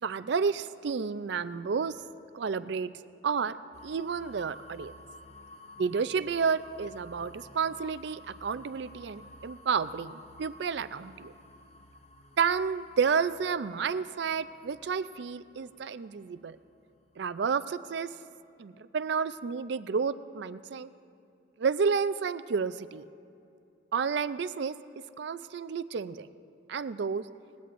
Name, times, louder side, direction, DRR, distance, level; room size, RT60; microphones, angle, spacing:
voice 1, 0.0-2.0 2.3-2.9 3.2-3.6 3.8-4.9 5.8-11.3 12.4-16.6 17.2-18.1 18.6-20.9 21.6-23.1 23.9-24.8 25.2-26.3 26.7-27.3, right 5 dB, 60° right, 14 dB, 0.4 m, -30 dB
sound 1, 3.7-17.5, left 1 dB, 35° left, 0.8 m, -53 dB
20.0 x 16.0 x 2.6 m, 2.7 s
head